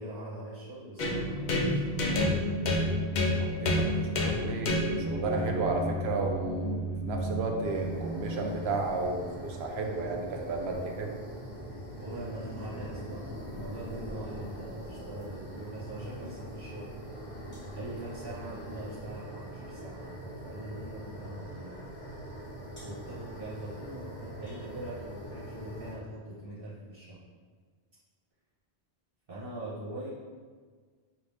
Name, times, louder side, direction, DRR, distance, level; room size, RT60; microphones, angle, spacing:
voice 1, 0.0-2.1 12.0-16.9 17.7-21.7 22.8-27.2 29.3-30.1, right 1 dB, 60° right, -9 dB, 1.2 m, -42 dB
sound 1, 1.0-8.8, left 1 dB, 55° left, 0.6 m, -30 dB
voice 2, 3.4-6.8 7.1-11.1, right 3 dB, 80° right, 2 dB, 0.9 m, -33 dB
sound 2, 7.6-25.9, equal, 10° left, 1.1 m, -42 dB
5.6 x 2.5 x 3.3 m, 1.5 s
omnidirectional pair, 1.1 m